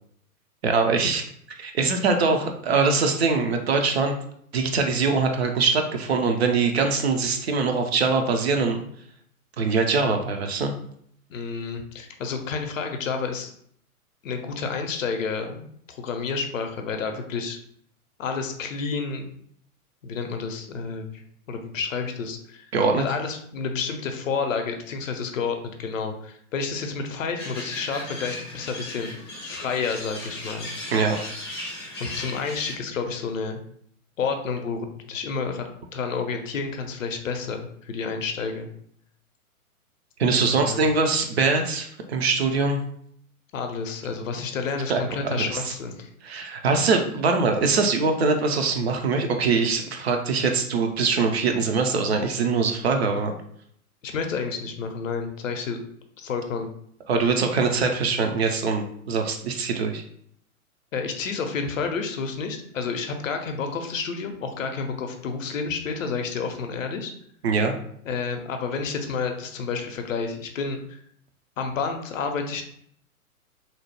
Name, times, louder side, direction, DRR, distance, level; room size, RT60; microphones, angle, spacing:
voice 1, 0.6-1.2 1.6-4.1 4.5-8.8 9.6-10.7 22.7-23.0 30.9-31.2 40.2-42.8 44.9-45.0 45.4-45.5 46.2-53.3 57.1-60.0 67.4-67.7, right 4 dB, 45° right, 4 dB, 0.4 m, -23 dB
voice 2, 11.3-13.5 14.2-17.6 18.2-19.3 20.0-21.2 21.5-22.7 23.0-30.7 32.0-33.6 34.2-38.7 40.4-40.8 43.5-46.1 54.0-55.8 56.2-56.7 60.9-67.1 68.1-71.0 71.6-72.6, left 5 dB, 60° left, 5 dB, 0.6 m, -30 dB
sound 1, 27.4-32.7, left 1 dB, 20° left, 0.3 m, -36 dB
2.8 x 2.0 x 2.9 m, 0.66 s
figure-of-eight pair, 115°, 44 cm